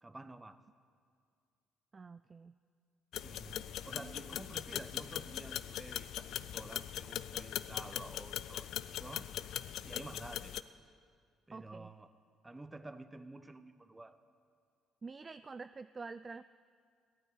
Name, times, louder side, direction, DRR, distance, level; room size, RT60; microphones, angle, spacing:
voice 1, 0.0-0.6 3.2-9.3 9.8-10.5 11.5-12.1 12.4-14.2, right 2 dB, 20° right, 11 dB, 1.0 m, -50 dB
voice 2, 1.9-2.6 3.9-4.4 11.5-11.9 15.0-16.4, right 4 dB, 35° right, 12 dB, 0.3 m, -48 dB
sound 1, 3.1-10.6, left 11 dB, 70° left, 0.4 m, -41 dB
15.0 x 9.3 x 8.5 m, 2.1 s
hypercardioid pair, 55°, 0 cm